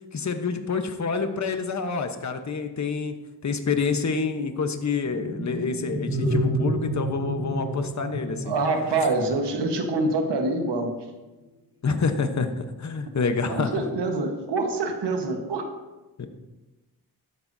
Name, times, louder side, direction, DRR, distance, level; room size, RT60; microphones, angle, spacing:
voice 1, 0.1-3.2 3.4-8.5 11.8-13.8 16.2-16.3, left 4 dB, 45° left, 7 dB, 1.2 m, -27 dB
sound 1, 5.0-10.4, right 1 dB, 30° right, 3.3 m, -30 dB
voice 2, 8.4-10.9 13.5-15.7, right 3 dB, 90° right, 4 dB, 1.5 m, -25 dB
13.5 x 11.0 x 2.8 m, 1.1 s
cardioid pair, 80°, 40 cm